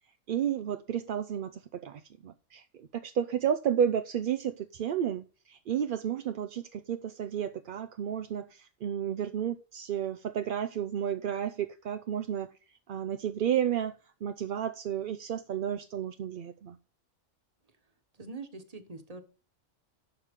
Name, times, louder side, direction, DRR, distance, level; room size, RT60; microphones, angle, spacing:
voice 1, 0.3-12.5 12.9-16.8, right 9 dB, 55° right, 0.6 m, -32 dB
voice 2, 18.1-19.2, right 3 dB, 30° right, 1.4 m, -43 dB
11.5 x 7.2 x 3.7 m
omnidirectional pair, 1.3 m